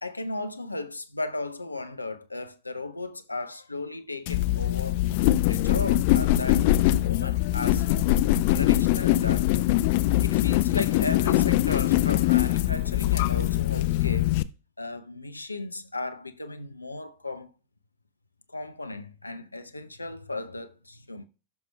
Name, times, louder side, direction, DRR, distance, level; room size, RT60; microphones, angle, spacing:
voice 1, 0.0-5.0 5.5-6.7 7.0-7.8 8.5-9.6 10.2-14.3 14.8-17.5 18.5-21.3, left 2 dB, 85° left, 0.7 m, -35 dB
sound 1, 4.3-14.4, left 15 dB, 50° left, 0.4 m, -23 dB
16.0 x 5.9 x 2.3 m
figure-of-eight pair, 90°, 0 cm